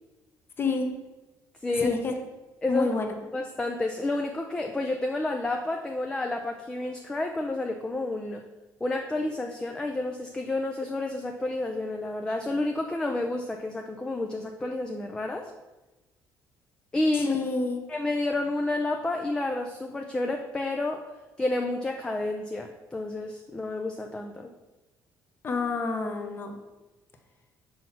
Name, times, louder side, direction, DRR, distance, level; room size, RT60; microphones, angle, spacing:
voice 1, 0.6-0.9 1.8-2.1 2.7-3.1 17.1-17.8 25.4-26.6, left 3 dB, 30° left, 4 dB, 1.0 m, -28 dB
voice 2, 3.3-8.4 8.8-15.5 16.9-17.3 17.9-21.0 21.4-24.5, left 2 dB, 10° left, 3 dB, 0.5 m, -30 dB
6.3 x 4.5 x 5.9 m, 1.1 s
cardioid pair, 140°, 7 cm